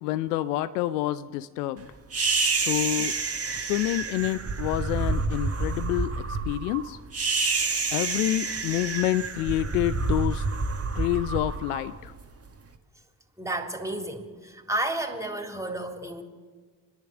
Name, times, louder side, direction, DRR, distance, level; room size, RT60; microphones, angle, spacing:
voice 1, 0.0-1.9 2.5-3.2 3.6-7.0 7.9-10.5 10.9-12.1, left 15 dB, 80° left, 14 dB, 0.6 m, -28 dB
sound 1, 2.1-12.5, right 4 dB, 30° right, 2.0 m, -28 dB
voice 2, 13.4-16.2, right 1 dB, 5° right, 3 dB, 3.5 m, -31 dB
29.0 x 11.0 x 8.7 m, 1.5 s
hypercardioid pair, 50°, 46 cm